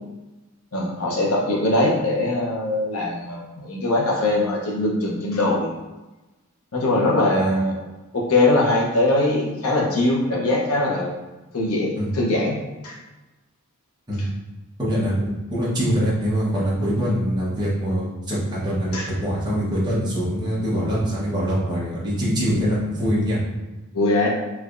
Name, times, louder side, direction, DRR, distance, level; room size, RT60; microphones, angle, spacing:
voice 1, 0.7-5.7 6.7-7.7 8.1-11.1 11.5-12.6 12.8-13.0 18.9-19.1 23.9-24.3, left 2 dB, 75° left, -2 dB, 0.8 m, -21 dB
voice 2, 14.8-23.4, equal, 20° right, -7 dB, 1.0 m, -23 dB
3.3 x 3.2 x 2.5 m, 1.1 s
head